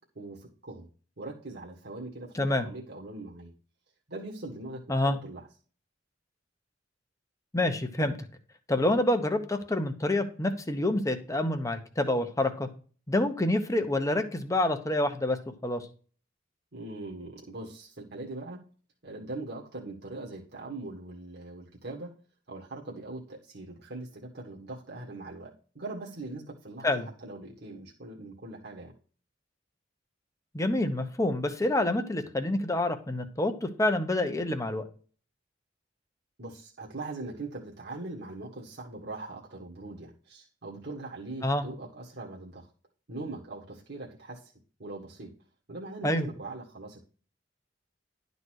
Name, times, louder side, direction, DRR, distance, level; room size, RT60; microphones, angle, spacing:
voice 1, 0.1-0.9 1.2-3.5 4.1-5.5 16.7-18.6 19.0-22.1 22.5-28.9 36.4-42.7 43.1-44.5 44.8-45.3 45.7-47.0, right 2 dB, 60° right, -3 dB, 1.7 m, -41 dB
voice 2, 2.3-2.7 4.9-5.2 7.5-8.1 8.7-12.7 13.1-15.4 15.6-15.9 26.8-27.1 30.5-34.9 41.4-41.6 46.0-46.3, left 1 dB, 15° left, 7 dB, 1.0 m, -27 dB
11.5 x 4.1 x 6.4 m, 0.40 s
head